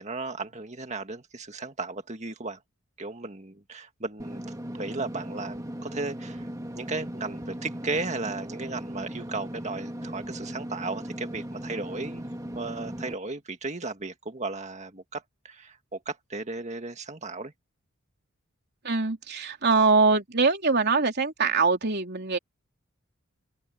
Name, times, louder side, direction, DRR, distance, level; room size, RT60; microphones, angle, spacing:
voice 1, 0.0-2.6 3.0-4.4 4.7-6.5 6.8-12.3 12.6-17.5, right 3 dB, 35° right, 1.9 m, -35 dB
Engine / Mechanisms, 4.2-13.1, equal, 15° right, 2.1 m, -37 dB
voice 2, 18.8-22.4, right 4 dB, 50° right, 3.5 m, -23 dB
head